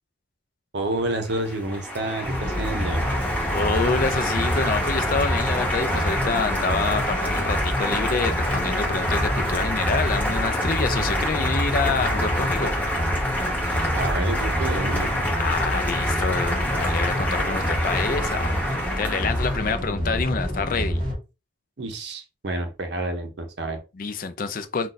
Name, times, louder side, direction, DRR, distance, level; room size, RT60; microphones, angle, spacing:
voice 1, 0.7-3.0 13.9-15.1 21.8-23.8, right 2 dB, 60° right, 0.7 m, -29 dB
Applause, 0.9-19.8, equal, 10° left, 0.9 m, -27 dB
sound 1, 2.2-21.2, equal, 25° right, 0.9 m, -27 dB
voice 2, 3.5-12.7 15.4-21.0 23.9-24.9, left 4 dB, 45° left, 0.4 m, -27 dB
2.5 x 2.3 x 3.8 m
head